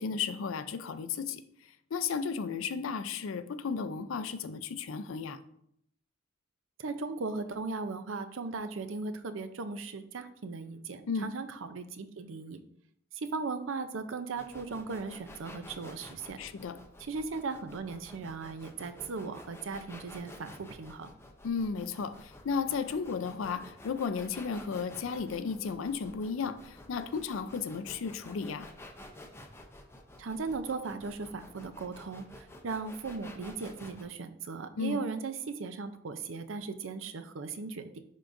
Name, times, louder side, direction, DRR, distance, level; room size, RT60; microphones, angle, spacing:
voice 1, 0.0-1.4 1.9-5.4 11.1-11.3 16.4-16.8 21.4-28.7 34.8-35.0, left 5 dB, 80° left, 0.4 m, -34 dB
voice 2, 6.8-12.6 13.1-16.4 17.0-21.1 30.2-32.2 32.6-38.0, right 4 dB, 70° right, 0.5 m, -37 dB
sound 1, 14.4-34.0, left 1 dB, 15° left, 0.6 m, -51 dB
10.5 x 3.8 x 2.5 m
head